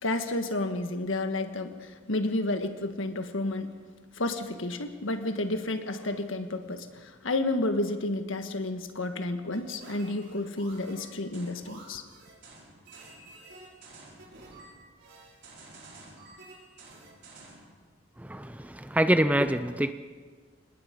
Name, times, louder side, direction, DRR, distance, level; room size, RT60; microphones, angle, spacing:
voice 1, 0.0-3.7 4.1-12.0, left 2 dB, 75° left, 1.7 m, -31 dB
sound 1, 9.5-17.7, right 2 dB, 55° right, 6.2 m, -50 dB
voice 2, 18.2-19.9, right 1 dB, 5° right, 0.6 m, -25 dB
26.0 x 20.0 x 5.3 m
head